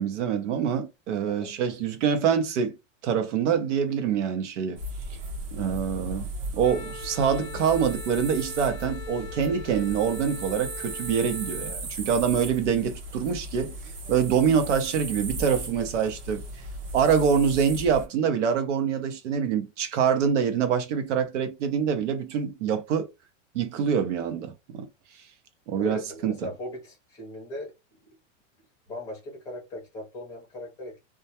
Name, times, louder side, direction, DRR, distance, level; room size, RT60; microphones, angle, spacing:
voice 1, 0.0-2.8 3.0-4.8 5.5-6.3 6.5-13.7 14.1-16.4 16.9-23.1 23.5-24.9 25.7-26.3, right 7 dB, 75° right, 0.8 m, -25 dB
sound 1, 4.8-18.1, right 1 dB, 50° right, 0.9 m, -37 dB
Wind instrument woodwind instrument, 6.6-11.8, left 3 dB, 60° left, 0.6 m, -42 dB
voice 2, 25.8-28.0 28.9-31.0, left 1 dB, 10° left, 0.6 m, -38 dB
2.3 x 2.2 x 2.8 m
supercardioid pair, 175°, 37 cm